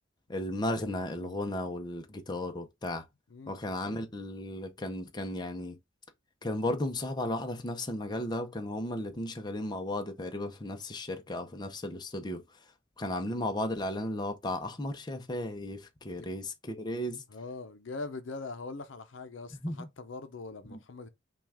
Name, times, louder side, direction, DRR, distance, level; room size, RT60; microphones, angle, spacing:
voice 1, 0.3-3.0 3.5-5.8 6.4-12.4 13.0-17.2 19.6-19.9 20.7-20.8, left 1 dB, 20° left, 0.7 m, -35 dB
voice 2, 17.3-21.1, left 3 dB, 70° left, 0.6 m, -42 dB
5.8 x 2.4 x 3.5 m
head